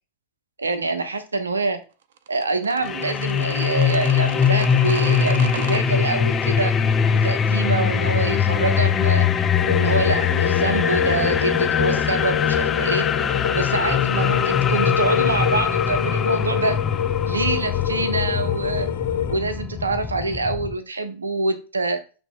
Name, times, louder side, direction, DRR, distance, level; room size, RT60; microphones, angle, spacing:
voice 1, 0.6-1.8 2.3-6.8 7.2-9.3 9.7-13.1 13.6-16.8 17.2-18.9 19.3-22.0, right 3 dB, 85° right, 9 dB, 1.1 m, -25 dB
sound 1, 2.2-5.8, right 9 dB, 65° right, 0.8 m, -36 dB
sound 2, 2.8-20.8, left 7 dB, 25° left, 0.9 m, -22 dB
sound 3, 9.5-19.4, left 9 dB, 70° left, 0.6 m, -26 dB
8.1 x 3.6 x 3.7 m, 0.34 s
figure-of-eight pair, 90°, 0 cm